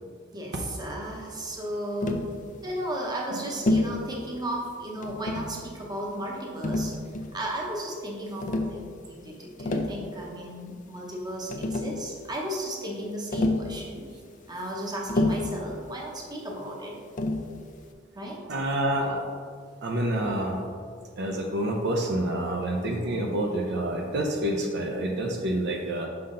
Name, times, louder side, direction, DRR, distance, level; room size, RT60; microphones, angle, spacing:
voice 1, 0.3-2.2 2.6-6.9 7.3-14.0 14.5-17.0 18.1-18.4, right 1 dB, 20° right, -1 dB, 1.0 m, -35 dB
Tap, 2.0-2.3 3.7-4.0 5.0-5.6 6.6-7.4 8.4-8.8 9.5-10.0 11.1-11.2 11.5-12.0 13.3-13.7 15.1-15.6 17.2-17.5, left 2 dB, 40° left, 0.5 m, -27 dB
voice 2, 18.5-19.2 19.8-20.6 21.2-26.1, right 1 dB, 60° right, 1 dB, 0.7 m, -28 dB
5.7 x 5.5 x 3.8 m, 2.1 s
head